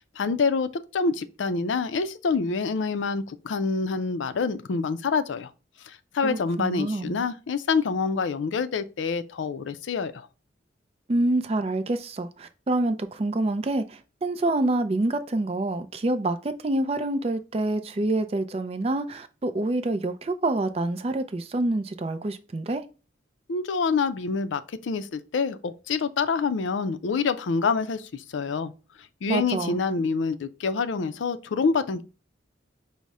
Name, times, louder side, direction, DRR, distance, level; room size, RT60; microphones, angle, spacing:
voice 1, 0.2-5.5 5.8-10.3 23.5-28.7 29.2-32.0, left 4 dB, 80° left, 0.4 m, -26 dB
voice 2, 6.2-7.2 11.1-22.9 29.3-29.8, right 2 dB, 30° right, 0.4 m, -27 dB
5.4 x 2.1 x 4.7 m
head